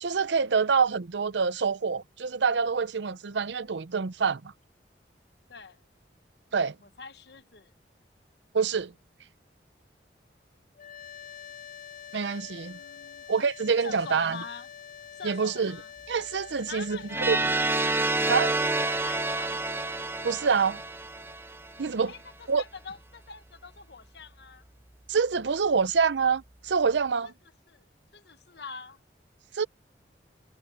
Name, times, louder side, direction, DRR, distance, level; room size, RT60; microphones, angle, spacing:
voice 1, 0.0-4.4 6.5-6.7 8.5-8.9 12.1-12.8 13.3-14.4 15.2-15.7 16.1-17.0 17.3-17.4 18.3-18.5 20.2-20.8 21.8-22.1 22.5-22.6 25.1-27.3 29.5-29.7, right 5 dB, 85° right, 0.6 m, -26 dB
voice 2, 5.5-5.8 6.8-7.7 12.4-13.2 13.8-14.7 15.2-15.9 16.7-17.5 18.8-19.7 22.1-24.7 27.2-27.3 27.7-27.9 28.1-29.0, left 5 dB, 70° left, 1.2 m, -44 dB
sound 1, 10.7-21.8, left 8 dB, 50° left, 2.1 m, -48 dB
sound 2, 17.1-21.9, right 2 dB, 15° right, 0.6 m, -28 dB
head